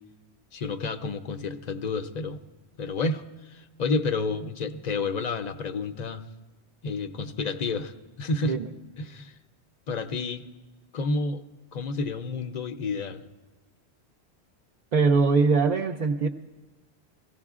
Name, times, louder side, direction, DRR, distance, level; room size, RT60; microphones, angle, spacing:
voice 1, 0.5-2.4 2.8-6.2 6.8-8.6 9.0-9.4 9.9-10.4 10.9-11.4 11.7-13.2, left 3 dB, 50° left, 9 dB, 0.5 m, -30 dB
voice 2, 14.9-16.3, right 4 dB, 55° right, 0 dB, 0.5 m, -22 dB
23.5 x 16.0 x 2.4 m, 1.2 s
omnidirectional pair, 1.1 m